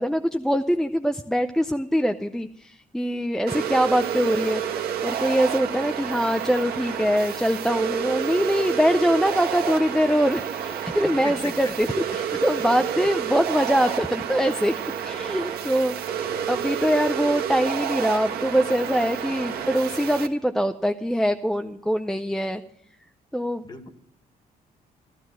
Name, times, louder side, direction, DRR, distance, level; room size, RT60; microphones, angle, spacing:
voice 1, 0.0-4.6 5.0-11.9 12.1-14.7 15.0-22.6 23.3-23.6, equal, 5° left, 6 dB, 0.5 m, -23 dB
sound 1, 3.5-20.3, right 8 dB, 75° right, 1.6 m, -29 dB
voice 2, 11.2-11.7 12.1-12.2 16.2-16.7 19.3-19.7 23.6-23.9, left 3 dB, 25° left, 7 dB, 1.8 m, -39 dB
14.5 x 13.0 x 6.2 m, 0.71 s
cardioid pair, 130°, 16 cm